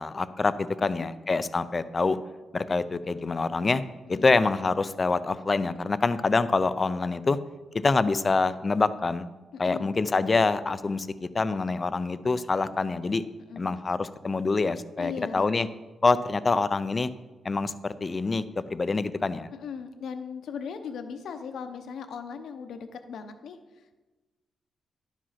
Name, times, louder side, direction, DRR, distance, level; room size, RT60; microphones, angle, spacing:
voice 1, 0.0-2.2 2.5-3.8 4.1-7.4 7.8-9.3 9.6-13.2 13.6-15.7 16.0-17.1 17.4-19.5, left 3 dB, 30° left, 14 dB, 0.4 m, -26 dB
voice 2, 9.5-9.9 13.5-13.7 15.0-15.7 19.5-24.0, left 6 dB, 75° left, 7 dB, 0.8 m, -38 dB
11.0 x 5.1 x 5.7 m, 1.2 s
cardioid pair, 125°, 0 cm